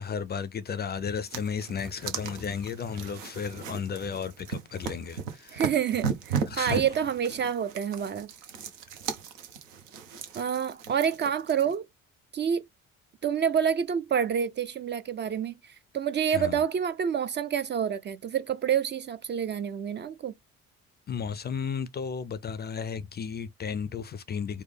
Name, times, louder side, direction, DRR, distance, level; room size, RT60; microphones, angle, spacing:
voice 1, 0.0-5.7 6.4-6.9 16.3-16.6 21.1-24.6, left 6 dB, 25° left, 0.5 m, -34 dB
sound 1, 1.3-11.8, right 6 dB, 70° right, 0.8 m, -37 dB
voice 2, 5.5-8.3 10.3-11.8 12.3-12.7 13.2-15.5 15.9-20.3, right 8 dB, 30° right, 0.4 m, -28 dB
4.7 x 2.1 x 3.4 m
figure-of-eight pair, 45°, 39 cm